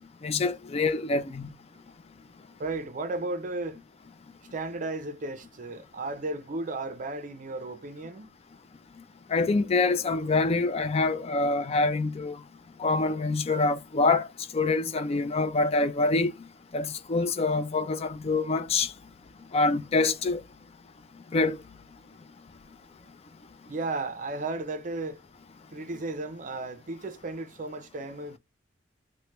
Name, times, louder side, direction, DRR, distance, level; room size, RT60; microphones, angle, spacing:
voice 1, 0.2-1.5 9.3-12.4 12.8-14.3 14.5-16.3 16.7-18.9 19.5-20.4 21.3-21.6, left 3 dB, 35° left, 0.3 m, -25 dB
voice 2, 2.6-3.8 4.5-8.3 23.7-25.2 25.7-28.4, right 2 dB, 45° right, 0.5 m, -34 dB
3.2 x 2.1 x 2.9 m
head